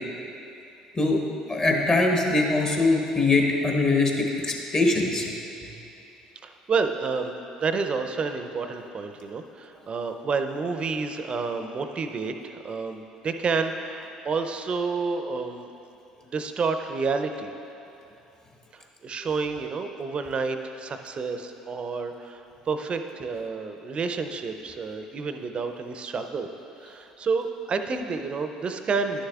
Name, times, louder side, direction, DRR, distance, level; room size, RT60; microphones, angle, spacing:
voice 1, 1.5-5.3, left 2 dB, 30° left, 0 dB, 1.2 m, -22 dB
voice 2, 6.4-15.7 16.2-17.5 18.7-26.5 26.8-29.2, right 4 dB, 40° right, 7 dB, 0.5 m, -29 dB
11.0 x 6.5 x 2.4 m, 2.8 s
hypercardioid pair, 60°, 3 cm